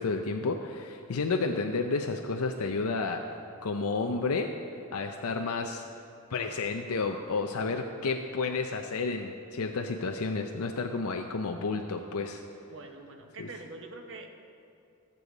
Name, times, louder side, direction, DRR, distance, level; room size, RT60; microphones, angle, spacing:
voice 1, 0.0-3.2 3.6-4.5 4.9-5.8 6.3-12.4 13.4-13.5, left 4 dB, 80° left, 4 dB, 0.6 m, -31 dB
voice 2, 12.7-14.4, right 2 dB, 60° right, 4 dB, 1.0 m, -45 dB
17.0 x 6.9 x 4.0 m, 2.4 s
head